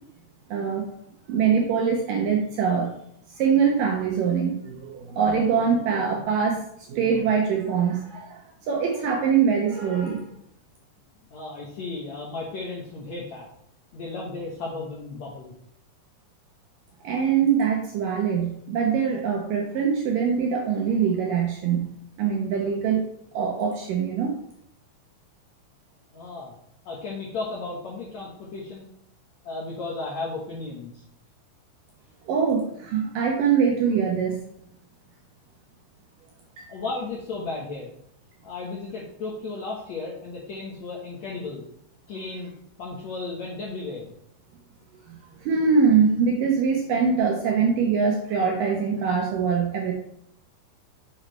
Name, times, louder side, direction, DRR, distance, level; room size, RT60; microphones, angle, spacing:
voice 1, 0.5-0.9 1.3-2.9 3.3-6.6 6.9-10.2 17.0-21.9 22.2-23.0 23.3-24.3 32.3-34.4 36.6-36.7 45.1-49.9, right 6 dB, 70° right, 0 dB, 2.1 m, -23 dB
voice 2, 11.3-13.5 13.9-15.5 26.1-26.6 26.8-28.9 29.4-30.9 36.7-37.9 38.4-41.6 42.1-42.5 42.8-44.1, left 3 dB, 70° left, -4 dB, 1.7 m, -34 dB
7.8 x 6.8 x 3.2 m, 0.71 s
omnidirectional pair, 4.8 m